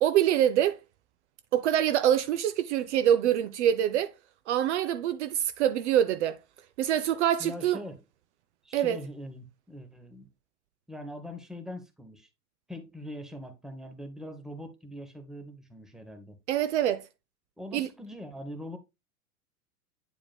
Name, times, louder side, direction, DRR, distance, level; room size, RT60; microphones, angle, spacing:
voice 1, 0.0-0.8 1.5-4.1 4.5-6.4 6.8-7.8 8.7-9.0 16.5-17.0 17.7-17.9, right 10 dB, 50° right, 0.6 m, -25 dB
voice 2, 7.4-8.0 8.6-10.3 10.9-12.3 12.7-16.4 17.6-18.8, left 1 dB, ahead, 0.9 m, -42 dB
9.1 x 4.8 x 2.2 m
figure-of-eight pair, 100°, 45 cm